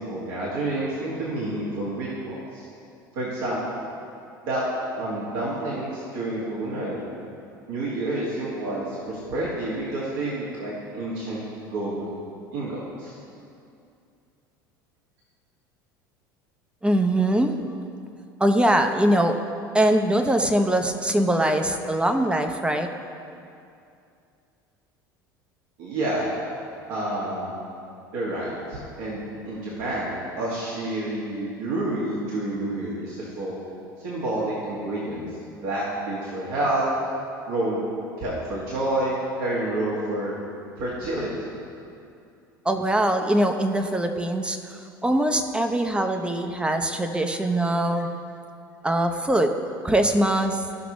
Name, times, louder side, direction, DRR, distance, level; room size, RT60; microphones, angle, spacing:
voice 1, 0.0-2.7 3.2-3.8 4.5-4.6 4.9-7.0 7.7-12.1 12.5-13.1 25.8-26.3 26.9-27.5 28.1-33.6 34.0-35.2 35.6-36.9 37.5-37.8 38.2-40.4 40.8-41.5, right 1 dB, 65° right, -7 dB, 2.0 m, -29 dB
voice 2, 16.8-17.5 18.4-19.4 19.7-22.9 42.6-48.1 48.8-49.5 49.8-50.6, right 1 dB, 10° right, 6 dB, 0.8 m, -22 dB
15.5 x 6.0 x 3.1 m, 2.5 s
figure-of-eight pair, 70°, 12 cm